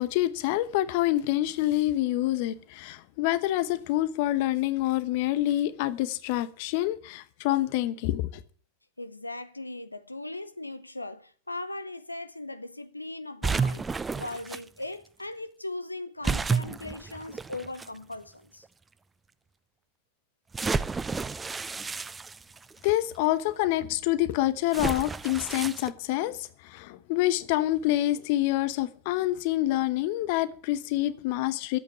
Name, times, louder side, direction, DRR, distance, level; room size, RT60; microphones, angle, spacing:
voice 1, 0.0-8.4 22.8-31.8, left 15 dB, 45° left, 0.9 m, -27 dB
voice 2, 9.0-18.7, left 2 dB, 85° left, 0.7 m, -39 dB
sound 1, 13.4-14.6 16.2-17.9 18.6-18.7 20.5-22.9 24.7-25.9, right 4 dB, 15° right, 0.5 m, -31 dB
12.0 x 8.3 x 8.1 m
figure-of-eight pair, 90°, 0 cm